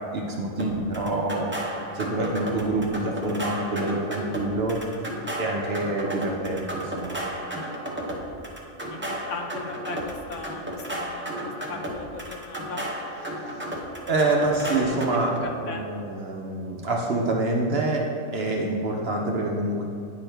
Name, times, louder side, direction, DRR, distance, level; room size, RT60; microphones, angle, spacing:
voice 1, 0.0-1.7 1.9-4.8 5.4-7.2 14.1-19.8, right 2 dB, 55° right, 0 dB, 0.7 m, -26 dB
sound 1, 0.6-15.4, right 1 dB, 15° right, 0.4 m, -33 dB
voice 2, 8.9-12.9 14.6-15.0 15.7-15.8, left 4 dB, 70° left, 3 dB, 0.9 m, -38 dB
9.0 x 4.4 x 3.3 m, 2.5 s
omnidirectional pair, 1.5 m